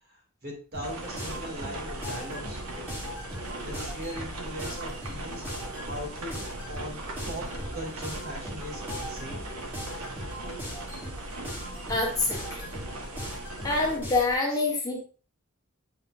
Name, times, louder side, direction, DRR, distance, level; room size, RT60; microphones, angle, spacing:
voice 1, 0.1-2.6 3.6-6.4 6.7-7.0 7.3-7.4 7.7-9.4 14.5-14.6, equal, 45° right, -1 dB, 2.6 m, -39 dB
sound 1, 0.7-14.4, equal, 10° right, 3.3 m, -40 dB
sound 2, 0.8-14.0, right 2 dB, 85° right, 1.3 m, -39 dB
voice 2, 11.9-12.7 13.6-15.0, left 3 dB, 15° left, -2 dB, 1.4 m, -26 dB
8.6 x 5.5 x 2.6 m, 0.35 s
head